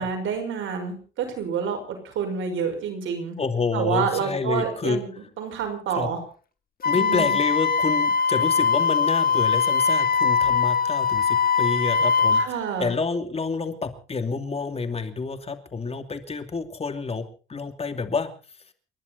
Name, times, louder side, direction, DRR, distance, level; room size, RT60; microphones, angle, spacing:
voice 1, 0.0-3.4 3.7-5.1 5.4-6.2 6.9-7.4 12.3-12.9, right 6 dB, 80° right, 5 dB, 5.6 m, -28 dB
voice 2, 3.4-5.0 6.0-6.1 6.8-18.3, left 4 dB, 30° left, 8 dB, 2.8 m, -28 dB
Wind instrument woodwind instrument, 6.8-12.5, left 6 dB, 45° left, 2.0 m, -21 dB
29.5 x 11.0 x 4.2 m, 0.39 s
cardioid pair, 90°, 20 cm